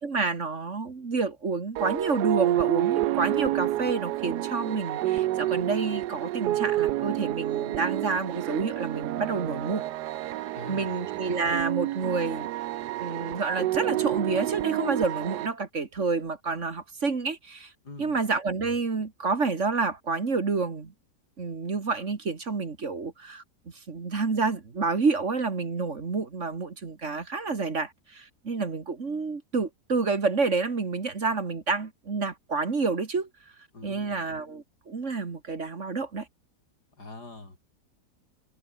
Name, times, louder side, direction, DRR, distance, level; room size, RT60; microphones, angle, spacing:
voice 1, 0.0-9.8 10.4-12.5 13.0-17.7 18.0-20.9 21.4-23.4 23.9-33.3 33.8-36.3, right 4 dB, 50° right, 2.3 m, -29 dB
sound 1, 1.8-15.5, right 14 dB, 85° right, 1.2 m, -29 dB
voice 2, 10.6-11.0 17.8-18.2 33.7-34.3 37.0-37.6, left 2 dB, 80° left, 6.1 m, -43 dB
omnidirectional pair, 1.7 m